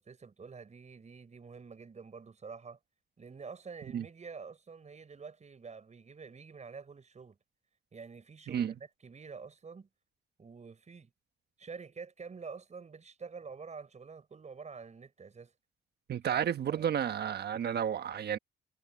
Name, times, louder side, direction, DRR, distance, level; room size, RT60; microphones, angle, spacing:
voice 1, 0.0-2.8 3.2-7.4 7.9-9.9 10.4-11.1 11.6-15.5 16.3-16.9, right 5 dB, 35° right, 5.8 m, -48 dB
voice 2, 16.1-18.4, right 9 dB, 55° right, 1.3 m, -32 dB
cardioid pair, 90°, 20 cm